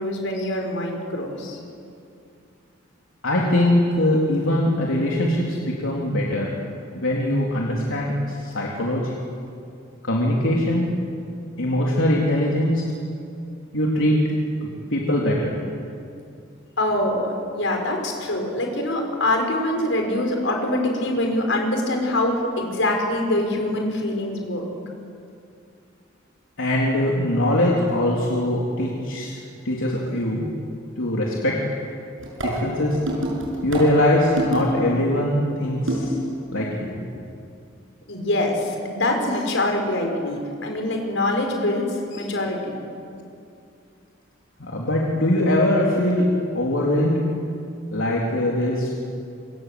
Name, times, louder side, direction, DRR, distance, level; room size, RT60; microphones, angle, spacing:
voice 1, 0.0-1.6 16.8-24.7 38.1-42.8, left 1 dB, 70° left, 2 dB, 5.8 m, -24 dB
voice 2, 3.2-6.5 6.9-9.1 10.0-10.9 11.6-12.8 13.7-14.2 14.6-15.6 26.6-29.4 29.6-30.5 31.0-31.8 32.4-33.0 33.6-36.2 36.5-37.0 44.6-46.3 46.5-47.3 47.9-49.0, left 1 dB, 85° left, -3 dB, 3.8 m, -22 dB
sound 1, 32.2-34.9 35.9-36.3, right 1 dB, 75° right, 7.3 m, -27 dB
28.0 x 26.5 x 8.0 m, 2.5 s
head